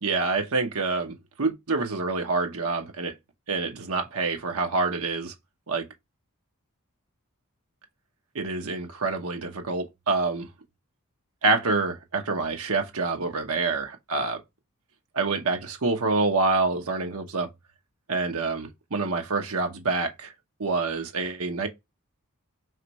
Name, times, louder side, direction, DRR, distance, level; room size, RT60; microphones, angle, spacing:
voice 1, 0.0-3.1 3.5-5.3 5.7-5.8 8.3-10.5 11.4-14.4 15.1-17.5 18.1-20.3 20.6-21.7, right 3 dB, 80° right, 0.9 m, -27 dB
5.0 x 3.0 x 2.9 m
head